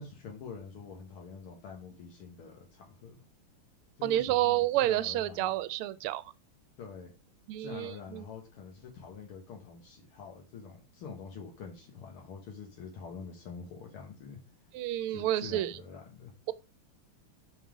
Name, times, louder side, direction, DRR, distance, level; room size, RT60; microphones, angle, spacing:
voice 1, 0.0-3.2 4.0-5.5 6.8-7.1 7.6-14.4 15.1-16.3, left 5 dB, 75° left, 2.1 m, -46 dB
voice 2, 4.0-6.2 7.5-8.2 14.7-15.7, right 14 dB, 85° right, 1.5 m, -29 dB
5.5 x 5.5 x 4.8 m
omnidirectional pair, 2.4 m